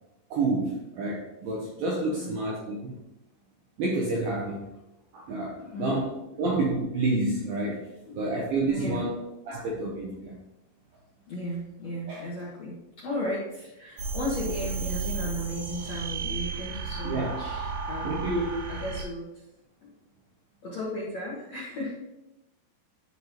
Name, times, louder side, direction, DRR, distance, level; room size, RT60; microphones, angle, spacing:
voice 1, 0.3-3.0 3.8-4.7 5.1-6.1 6.4-7.9 8.2-9.2 9.5-10.4 12.1-12.3 17.1-17.3 18.0-18.6, right 2 dB, 80° right, -1 dB, 2.1 m, -29 dB
voice 2, 2.1-2.4 5.6-6.0 6.3-6.4 8.1-8.2 8.7-9.0 9.5-9.6 10.1-10.2 11.3-18.4 18.7-19.3 19.8-19.9 20.6-21.9, left 1 dB, 70° left, -6 dB, 1.6 m, -35 dB
sound 1, 14.0-19.0, right 5 dB, 60° right, 2.2 m, -33 dB
11.0 x 3.9 x 2.9 m, 0.92 s
omnidirectional pair, 5.1 m